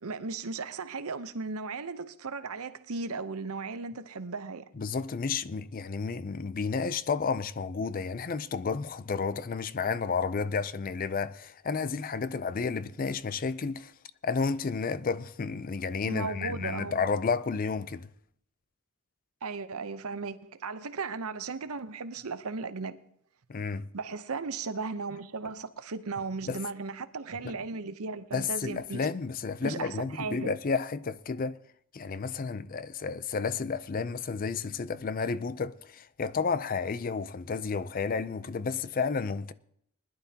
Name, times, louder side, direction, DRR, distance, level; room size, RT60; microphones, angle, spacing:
voice 1, 0.0-4.7 16.0-17.0 19.4-23.0 23.9-29.0 29.6-30.5, right 4 dB, 75° right, 0.8 m, -36 dB
voice 2, 4.8-13.9 14.2-18.1 23.5-23.9 26.5-26.6 27.4-27.6 28.3-31.6 31.9-39.5, left 5 dB, 40° left, 0.4 m, -31 dB
20.5 x 11.5 x 2.8 m
head